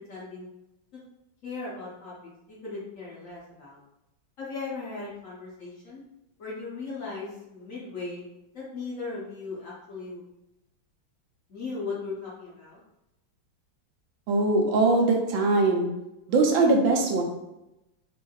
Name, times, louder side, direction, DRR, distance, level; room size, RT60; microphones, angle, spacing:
voice 1, 0.1-0.5 1.4-3.8 4.4-6.0 6.4-8.2 8.5-10.2 11.5-12.8, left 4 dB, 55° left, -7 dB, 1.0 m, -37 dB
voice 2, 14.3-15.9 16.3-17.2, right 3 dB, 85° right, 1 dB, 1.4 m, -21 dB
4.4 x 2.5 x 2.3 m, 0.91 s
omnidirectional pair, 2.1 m